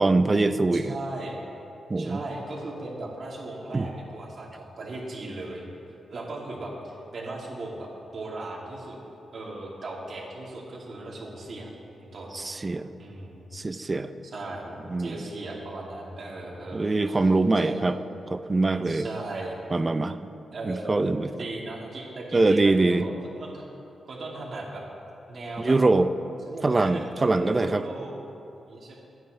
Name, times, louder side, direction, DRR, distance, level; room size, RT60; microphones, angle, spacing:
voice 1, 0.0-0.9 1.9-2.2 3.7-3.9 12.3-12.9 13.5-14.1 14.9-15.1 16.7-18.0 18.3-19.1 19.7-20.2 20.6-21.3 22.3-23.1 25.6-26.1 26.6-27.9, right 2 dB, 25° right, 10 dB, 0.5 m, -23 dB
voice 2, 0.7-1.4 1.9-5.6 6.1-9.0 9.3-11.7 12.0-12.3 13.0-13.5 14.3-17.3 17.6-17.9 18.8-19.6 20.5-20.9 21.4-23.6 24.0-24.8 25.3-25.8 26.5-28.1 28.7-28.9, right 2 dB, 55° right, -3 dB, 2.8 m, -37 dB
24.0 x 9.3 x 3.3 m, 2.7 s
cardioid pair, 110°, 0 cm